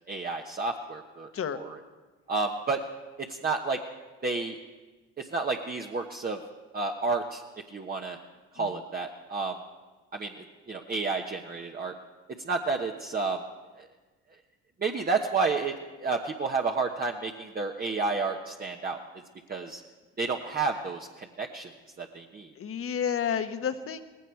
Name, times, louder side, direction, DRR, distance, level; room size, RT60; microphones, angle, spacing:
voice 1, 0.1-1.8 2.3-2.8 3.2-3.8 4.2-4.6 5.2-6.4 6.7-8.2 8.5-9.6 10.1-11.9 12.3-13.4 13.8-13.9 14.8-15.7 16.0-19.0 19.5-19.8 20.2-21.7 22.0-22.5, right 4 dB, 25° right, 1 dB, 1.2 m, -31 dB
voice 2, 22.6-24.0, left 8 dB, 40° left, 9 dB, 1.3 m, -30 dB
18.5 x 16.0 x 4.7 m, 1.3 s
supercardioid pair, 75°, 33 cm